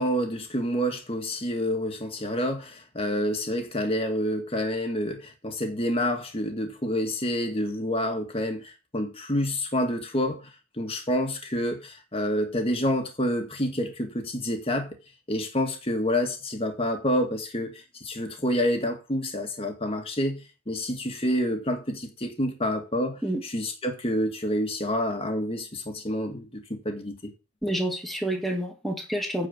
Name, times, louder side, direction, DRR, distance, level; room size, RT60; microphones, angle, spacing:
voice 1, 0.0-10.4 10.8-14.9 15.3-27.3, equal, 25° left, 2.0 m, -28 dB
voice 2, 27.6-29.5, right 1 dB, ahead, 1.8 m, -28 dB
9.5 x 4.7 x 7.3 m
head